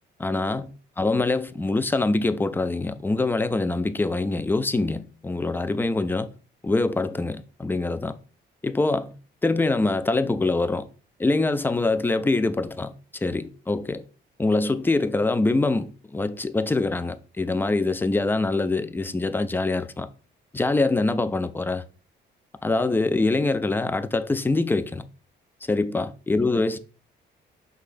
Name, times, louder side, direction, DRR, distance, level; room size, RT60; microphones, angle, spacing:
voice 1, 0.2-6.3 6.6-8.2 8.6-9.1 9.4-10.9 11.2-14.0 14.4-20.1 20.5-21.8 22.6-25.0 25.7-26.8, left 2 dB, 10° left, 0.3 m, -24 dB
4.9 x 3.8 x 2.5 m
cardioid pair, 90°, 20 cm